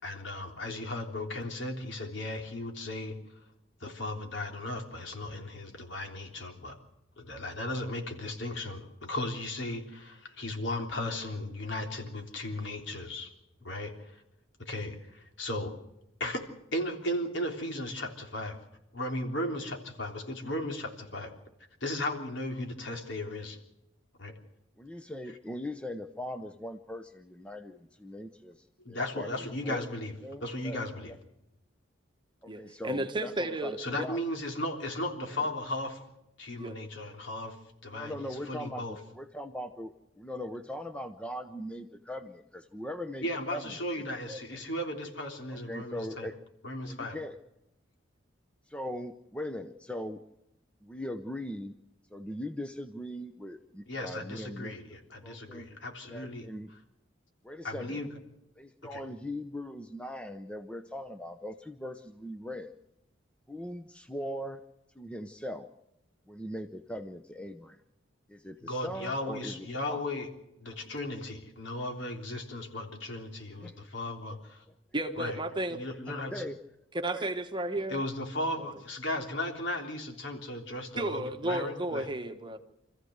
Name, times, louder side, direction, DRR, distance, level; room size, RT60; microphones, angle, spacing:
voice 1, 0.0-3.2 3.8-6.8 7.2-13.3 13.6-14.2 14.6-15.7 16.2-16.4 16.7-18.6 18.9-21.3 21.8-23.6 24.2-24.3 28.8-30.1 30.4-31.1 33.8-36.0 36.4-37.6 37.8-39.0 43.2-46.3 46.6-47.2 53.9-56.8 57.6-58.2 58.9-59.0 68.6-70.3 70.6-74.6 75.1-75.4 75.7-76.4 77.9-82.1, left 1 dB, 70° left, 3 dB, 3.5 m, -36 dB
voice 2, 24.8-29.3 29.6-30.8 32.4-34.2 35.3-35.4 37.9-43.7 44.3-44.6 45.5-46.4 46.9-47.3 48.7-50.2 50.8-51.7 52.1-54.8 55.2-55.7 56.1-56.7 57.4-58.0 58.6-62.7 63.5-64.6 65.0-65.7 66.3-67.8 68.3-70.0 70.7-70.8 73.6-73.7 76.1-76.6 77.1-77.3, left 1 dB, 5° left, 8 dB, 0.7 m, -40 dB
voice 3, 32.5-33.8 36.6-36.8 74.9-75.8 76.9-78.0 81.0-82.6, right 1 dB, 25° right, 7 dB, 1.3 m, -33 dB
26.5 x 14.5 x 8.0 m, 0.90 s
head